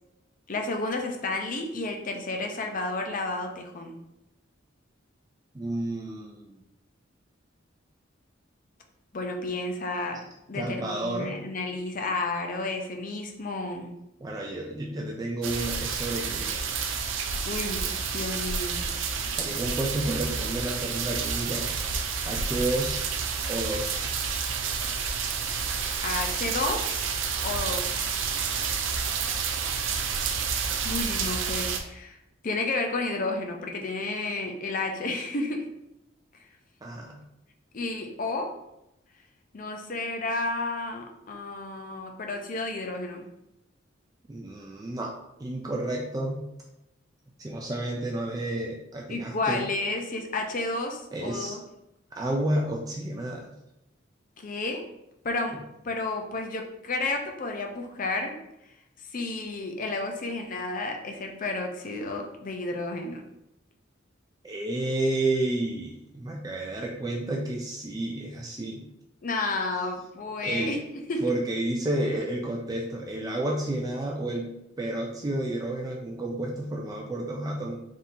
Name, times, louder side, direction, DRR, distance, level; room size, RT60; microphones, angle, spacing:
voice 1, 0.5-3.9 9.1-10.2 10.5-13.9 17.4-17.9 18.1-18.9 25.5-25.7 26.0-27.2 27.4-28.2 30.8-32.2 32.4-35.6 37.7-38.5 39.5-43.3 49.1-51.6 54.4-54.8 55.2-55.6 55.8-58.4 59.1-63.2 69.2-70.8 71.1-71.2, left 2 dB, 45° left, 3 dB, 0.6 m, -31 dB
voice 2, 5.5-6.4 10.5-11.3 14.2-16.7 19.4-21.7 22.2-23.1 23.5-24.4 36.8-37.2 44.3-45.1 45.4-46.4 47.4-49.6 51.1-51.6 52.1-53.5 64.4-68.9 70.4-70.7 71.2-74.5 74.8-77.8, right 1 dB, 20° right, 0 dB, 0.3 m, -31 dB
sound 1, 15.4-31.8, right 6 dB, 75° right, 0.5 m, -29 dB
3.6 x 2.7 x 4.1 m, 0.87 s
head